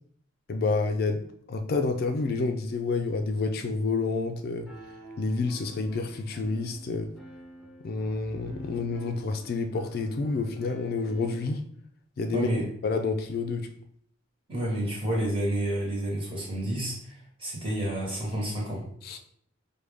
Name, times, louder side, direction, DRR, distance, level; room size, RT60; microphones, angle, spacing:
voice 1, 0.5-4.7 5.2-7.1 7.8-11.6 12.2-12.5 12.8-13.7 19.0-19.2, left 3 dB, 50° left, 6 dB, 0.3 m, -29 dB
Piano, 4.7-11.5, right 1 dB, ahead, 0.8 m, -47 dB
voice 2, 12.3-12.7 14.5-18.9, right 1 dB, 25° right, -3 dB, 1.2 m, -30 dB
4.8 x 2.2 x 3.4 m, 0.64 s
head